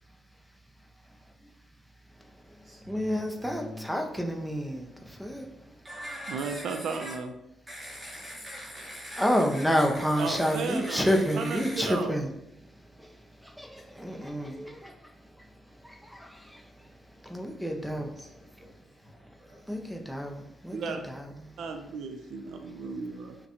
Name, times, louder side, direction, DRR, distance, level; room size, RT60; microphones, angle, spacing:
voice 1, 2.1-5.8 9.2-18.9 19.2-21.8 22.8-22.9, equal, ahead, 3 dB, 0.5 m, -31 dB
voice 2, 2.6-4.2 5.8-7.1 7.7-11.9 13.9-14.0 14.5-14.6 17.8-19.6, equal, 20° right, -4 dB, 0.8 m, -43 dB
voice 3, 6.3-7.3 10.2-11.1 11.3-12.1 20.7-21.0 21.6-23.3, right 5 dB, 70° right, 5 dB, 0.4 m, -34 dB
5.6 x 2.2 x 2.9 m, 0.85 s
cardioid pair, 90°, 0 cm